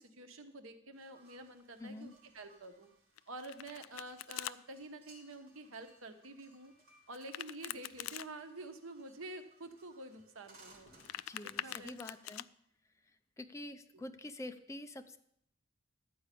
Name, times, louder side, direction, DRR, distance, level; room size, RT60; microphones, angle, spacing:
voice 1, 0.0-2.9 3.3-6.7 7.1-10.9 11.4-11.9, right 2 dB, 80° right, 7 dB, 1.1 m, -49 dB
sound 1, 0.9-12.2, right 2 dB, 50° right, 2.7 m, -65 dB
voice 2, 1.8-2.1 11.3-12.5 13.4-15.2, left 1 dB, 15° left, 7 dB, 0.5 m, -46 dB
Domestic sounds home sounds, 3.2-4.6 7.1-8.3 10.8-12.5, left 13 dB, 85° left, 0.3 m, -44 dB
12.0 x 4.8 x 8.4 m, 0.73 s
head